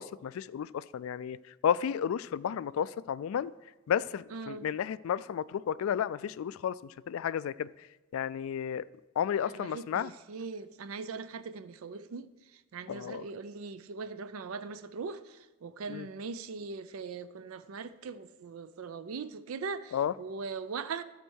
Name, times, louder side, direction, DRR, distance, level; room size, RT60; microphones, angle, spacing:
voice 1, 0.0-1.4 1.6-3.5 3.9-7.7 8.1-8.8 9.2-10.1 12.9-13.2 15.9-16.1 19.9-20.1, left 8 dB, 70° left, 0.3 m, -32 dB
voice 2, 4.3-4.7 9.4-12.3 12.5-21.0, right 4 dB, 75° right, 0.4 m, -40 dB
13.0 x 4.4 x 6.3 m
head